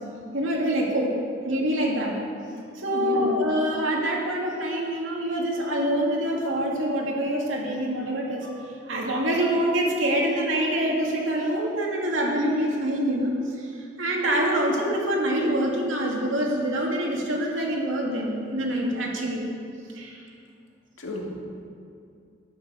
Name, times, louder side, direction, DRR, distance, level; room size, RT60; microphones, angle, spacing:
voice 1, 0.3-1.2 1.4-2.1 2.7-19.5 19.9-20.2, right 1 dB, 85° right, -2 dB, 2.4 m, -25 dB
voice 2, 2.9-3.2 21.0-21.4, left 1 dB, 85° left, -1 dB, 2.1 m, -33 dB
11.5 x 8.9 x 6.4 m, 2.4 s
head